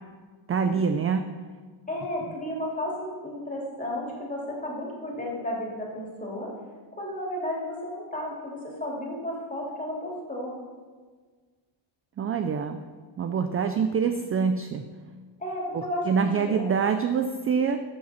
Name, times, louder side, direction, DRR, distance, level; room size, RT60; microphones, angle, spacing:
voice 1, 0.5-1.3 12.2-12.8 13.2-14.8 15.7-17.8, right 6 dB, 30° right, 8 dB, 0.4 m, -25 dB
voice 2, 1.9-6.5 7.0-10.5 15.4-16.6, left 1 dB, 15° left, -3 dB, 2.7 m, -33 dB
14.0 x 7.5 x 4.3 m, 1.5 s
cardioid pair, 155°, 49 cm